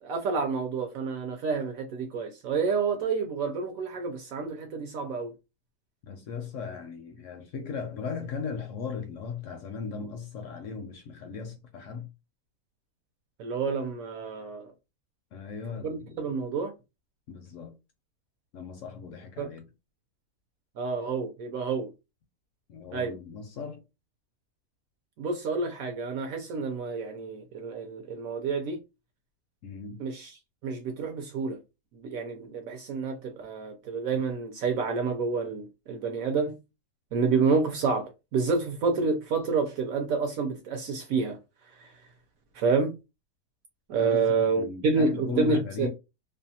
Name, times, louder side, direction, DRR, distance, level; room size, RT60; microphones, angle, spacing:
voice 1, 0.0-5.3 13.4-14.7 15.8-16.7 19.4-19.5 20.8-21.9 22.9-23.1 25.2-28.8 30.0-30.3 30.6-31.6 31.9-36.6 37.1-41.4 41.8-41.9 42.5-43.0 43.9-45.9, right 4 dB, 70° right, 0.9 m, -29 dB
voice 2, 6.0-12.1 15.3-16.1 17.3-17.7 18.5-19.7 22.7-23.8 29.6-30.1 44.0-44.3 44.6-45.9, left 5 dB, 70° left, 0.7 m, -37 dB
2.7 x 2.2 x 2.7 m
omnidirectional pair, 1.7 m